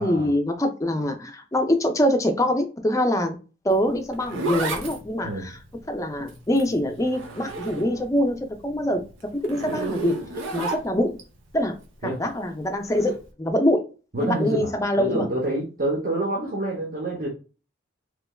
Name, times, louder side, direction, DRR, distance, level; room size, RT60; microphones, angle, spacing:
voice 1, 0.0-3.4 3.6-5.6 5.9-8.4 8.6-9.0 9.4-10.2 10.5-11.2 11.5-11.8 12.0-13.8 14.2-15.3, left 1 dB, 15° left, 5 dB, 0.4 m, -24 dB
Zipper (clothing), 3.7-8.2 8.6-11.2 12.8-13.1, right 3 dB, 85° right, 0.7 m, -33 dB
voice 2, 14.1-14.7 15.0-17.3, right 2 dB, 45° right, -3 dB, 0.8 m, -27 dB
3.3 x 3.0 x 2.2 m, 0.34 s
head